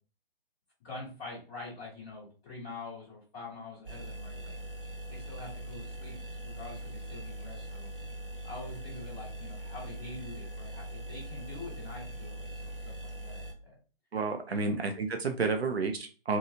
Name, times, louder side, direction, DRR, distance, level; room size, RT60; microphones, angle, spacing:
voice 1, 0.8-4.6 5.1-7.9 8.4-13.7 14.5-14.8 15.4-15.7, left 3 dB, 10° left, -9 dB, 0.6 m, -45 dB
sound 1, 3.9-13.5, right 1 dB, 65° right, 0.9 m, -42 dB
voice 2, 14.1-16.4, right 4 dB, 85° right, 5 dB, 0.5 m, -30 dB
2.8 x 2.3 x 2.7 m, 0.36 s
figure-of-eight pair, 140°, 30 cm